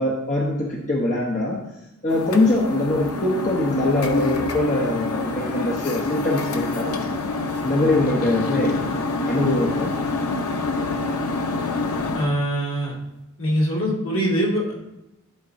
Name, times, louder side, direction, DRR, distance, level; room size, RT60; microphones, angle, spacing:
voice 1, 0.0-1.7 2.0-6.9 7.6-8.8 9.3-9.9, left 2 dB, 35° left, -3 dB, 0.9 m, -22 dB
sound 1, 2.1-12.3, left 3 dB, 85° left, 0.7 m, -26 dB
voice 2, 12.1-12.9 13.4-14.8, equal, 70° left, -5 dB, 2.2 m, -23 dB
11.0 x 4.5 x 2.6 m, 0.93 s
head